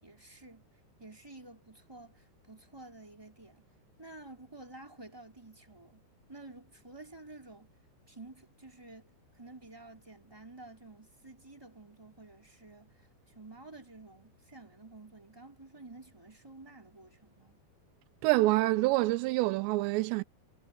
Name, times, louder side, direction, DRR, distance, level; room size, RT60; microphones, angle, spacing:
voice 1, 0.0-0.6 1.0-3.7 4.0-6.0 6.3-7.7 8.1-17.6, right 2 dB, 5° right, 5.3 m, -51 dB
voice 2, 18.2-20.2, right 19 dB, 90° right, 2.9 m, -26 dB
omnidirectional pair, 5.0 m